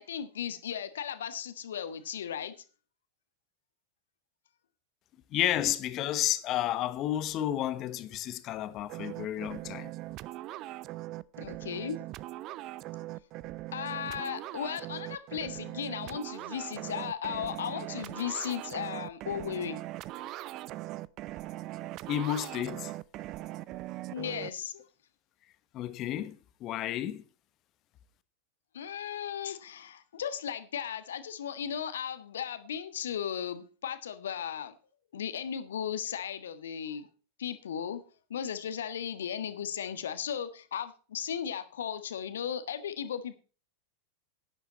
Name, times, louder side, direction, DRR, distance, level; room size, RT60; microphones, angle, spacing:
voice 1, 0.0-2.5 11.4-12.0 13.7-19.8 24.1-24.8 28.7-34.7 35.1-37.1 37.4-38.0 38.3-43.4, left 8 dB, 65° left, 1.5 m, -36 dB
voice 2, 5.3-9.9 22.1-22.9 25.7-27.2, left 12 dB, 35° left, 1.2 m, -31 dB
sound 1, 8.9-24.5, right 16 dB, 40° right, 0.5 m, -40 dB
12.0 x 10.0 x 4.2 m
figure-of-eight pair, 90°, 0 cm